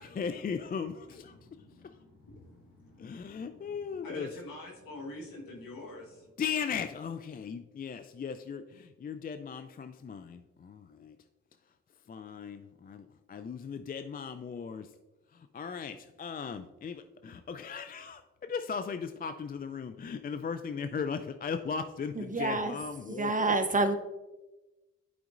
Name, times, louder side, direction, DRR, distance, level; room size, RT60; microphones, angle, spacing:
voice 1, 0.0-1.3 1.8-1.9 3.0-4.3 6.4-11.2 12.1-14.9 15.3-23.5, left 6 dB, 25° left, 9 dB, 0.4 m, -37 dB
voice 2, 1.1-6.3, left 2 dB, 85° left, 0 dB, 1.5 m, -47 dB
voice 3, 22.1-22.8 23.1-23.9, right 3 dB, 25° right, 7 dB, 0.9 m, -28 dB
11.0 x 5.0 x 2.5 m, 1.1 s
supercardioid pair, 55°, 33 cm